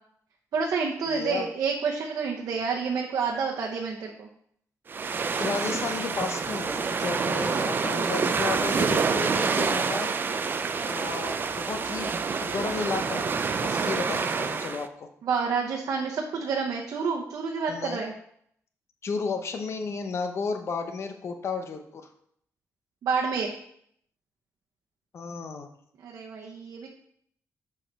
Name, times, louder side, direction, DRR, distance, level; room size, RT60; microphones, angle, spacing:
voice 1, 0.5-4.3 15.2-18.1 23.0-23.5 26.0-26.9, right 5 dB, 75° right, -1 dB, 0.9 m, -29 dB
voice 2, 1.0-1.5 5.4-10.3 10.8-13.3 13.6-15.1 17.7-18.0 19.0-22.1 25.1-25.7, left 4 dB, 50° left, 6 dB, 0.8 m, -33 dB
sound 1, 4.9-14.9, right 5 dB, 35° right, 0.4 m, -27 dB
6.4 x 5.0 x 4.5 m, 0.69 s
wide cardioid pair, 145°, 6 cm